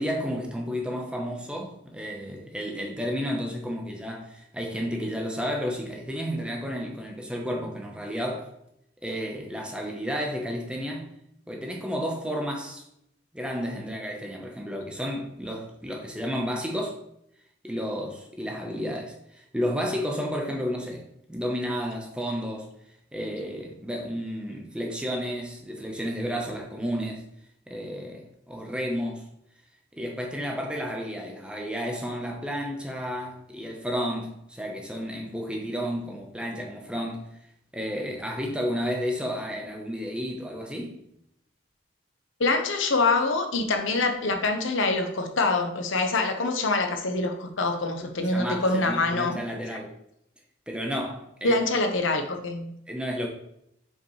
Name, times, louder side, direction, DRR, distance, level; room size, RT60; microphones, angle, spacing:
voice 1, 0.0-8.5 9.0-11.1 11.5-12.8 13.3-17.0 17.6-22.7 23.1-27.2 27.7-29.2 29.9-37.2 37.7-41.0 48.0-49.9 50.7-51.6 52.9-53.3, equal, 5° right, 0.9 m, -32 dB
voice 2, 42.4-49.4 51.4-52.7, left 3 dB, 85° left, 1.0 m, -25 dB
7.3 x 5.3 x 3.2 m
head